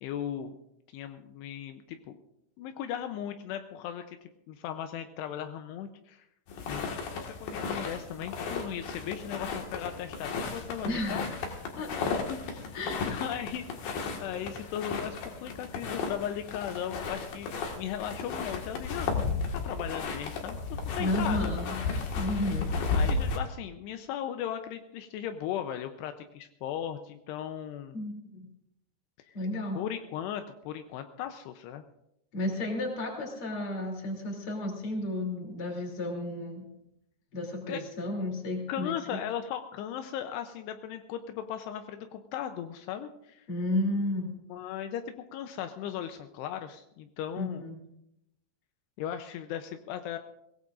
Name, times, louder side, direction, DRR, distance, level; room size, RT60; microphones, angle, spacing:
voice 1, 0.0-0.6 0.9-2.2 2.6-6.3 6.7-11.4 12.3-19.1 19.5-21.5 22.7-28.0 29.3-29.4 29.7-31.8 37.7-37.8 38.7-43.5 44.5-47.6 49.0-50.2, left 10 dB, 85° left, 7 dB, 2.8 m, -37 dB
sound 1, 6.5-23.4, left 4 dB, 65° left, 3.3 m, -34 dB
voice 2, 10.8-11.3 11.8-12.2 12.7-13.1 21.0-21.8 22.1-22.7 27.9-28.5 29.3-29.8 32.3-36.6 37.3-39.2 43.5-44.3 47.4-47.8, left 1 dB, 35° left, 1 dB, 3.4 m, -32 dB
23.5 x 17.0 x 2.5 m, 0.80 s
omnidirectional pair, 4.8 m